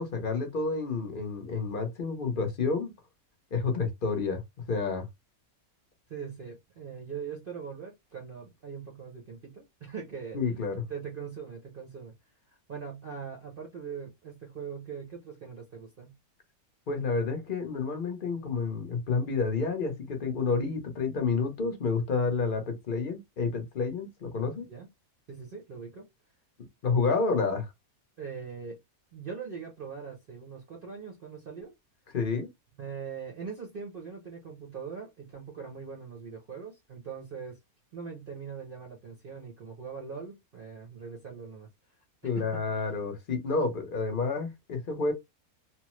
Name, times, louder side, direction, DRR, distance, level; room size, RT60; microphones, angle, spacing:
voice 1, 0.0-2.9 3.5-4.4 4.7-5.1 10.3-10.8 16.9-24.7 26.8-27.7 32.1-32.5 42.2-45.1, left 4 dB, 45° left, 0.8 m, -29 dB
voice 2, 6.1-10.4 10.9-12.1 12.7-16.1 24.6-24.9 25.3-26.1 28.2-28.8 29.1-31.7 32.8-37.6 37.9-41.7 42.2-42.7, right 6 dB, 50° right, 0.7 m, -41 dB
3.0 x 2.0 x 3.0 m
omnidirectional pair, 1.5 m